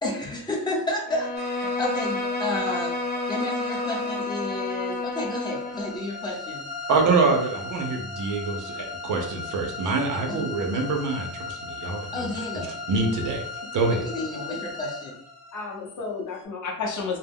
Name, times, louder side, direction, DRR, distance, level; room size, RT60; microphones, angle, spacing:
voice 1, 0.0-2.9 3.3-6.7 10.3-10.4 12.1-12.7 14.0-15.1, left 1 dB, 10° left, -3 dB, 0.8 m, -31 dB
Bowed string instrument, 1.1-6.0, left 3 dB, 30° left, 0.4 m, -30 dB
sound 1, 1.3-16.4, left 3 dB, 20° right, 0.6 m, -38 dB
voice 2, 6.9-12.3 12.5-13.5 13.7-14.1, right 3 dB, 60° right, 3 dB, 0.6 m, -25 dB
voice 3, 14.2-14.6 15.5-17.2, left 4 dB, 55° left, 1 dB, 0.7 m, -32 dB
2.2 x 2.0 x 3.5 m, 0.62 s
cardioid pair, 115°, 35 cm